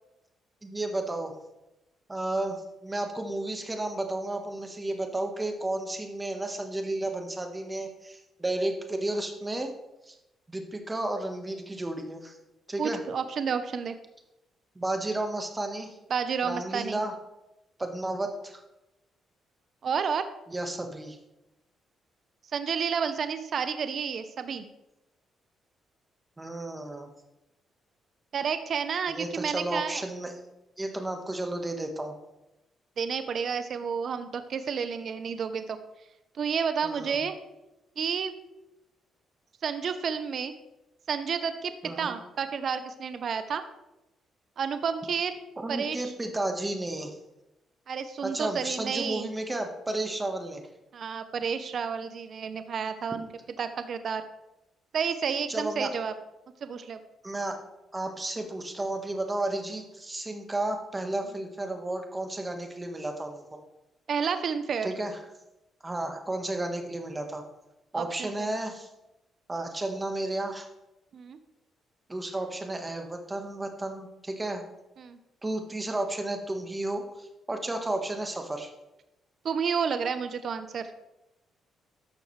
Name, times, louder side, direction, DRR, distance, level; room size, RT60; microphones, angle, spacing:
voice 1, 0.6-1.4 2.1-9.7 10.0-10.2 10.5-12.4 12.7-13.0 14.7-16.0 16.4-17.1 17.8-18.6 20.5-21.2 26.4-27.1 29.1-30.4 30.8-32.1 36.8-37.2 41.8-42.2 45.6-47.2 48.2-50.6 55.5-55.9 57.2-57.6 57.9-63.6 64.8-65.2 65.8-67.4 67.9-68.9 69.5-70.7 72.1-74.6 75.4-78.7, right 2 dB, 20° right, 5 dB, 1.4 m, -32 dB
voice 2, 12.8-14.0 16.1-17.0 19.8-20.3 22.5-24.6 28.3-30.0 33.0-35.8 36.4-37.4 38.0-38.3 39.6-40.5 41.1-43.6 44.6-45.4 45.7-46.1 47.9-49.3 50.9-53.3 53.6-54.2 54.9-56.1 56.6-57.0 64.1-64.9 67.9-68.5 71.1-71.4 75.0-75.2 79.4-80.9, right 6 dB, 55° right, 10 dB, 0.6 m, -30 dB
11.5 x 6.4 x 3.2 m, 0.93 s
cardioid pair, 90°, 0 cm